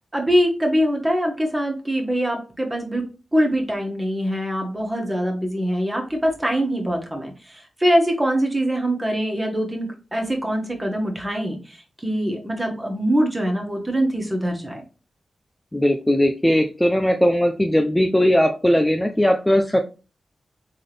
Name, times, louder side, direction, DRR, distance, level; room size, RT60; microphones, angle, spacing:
voice 1, 0.1-3.0 3.3-14.8, equal, 15° right, 1 dB, 1.6 m, -23 dB
voice 2, 15.7-19.8, equal, 10° left, 5 dB, 0.5 m, -19 dB
3.8 x 3.6 x 3.4 m, 0.33 s
cardioid pair, 55°, 0 cm